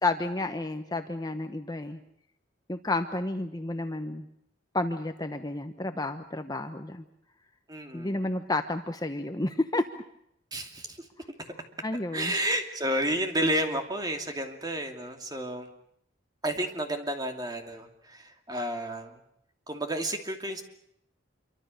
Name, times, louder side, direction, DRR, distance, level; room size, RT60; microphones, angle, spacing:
voice 1, 0.0-2.0 2.7-4.3 4.7-7.0 7.9-9.9 11.8-12.3, left 2 dB, 20° left, 7 dB, 1.1 m, -31 dB
voice 2, 7.7-8.3 10.5-11.1 12.1-15.7 16.4-19.2 19.7-20.6, right 1 dB, 20° right, 5 dB, 2.6 m, -31 dB
27.0 x 24.0 x 6.6 m, 0.73 s
head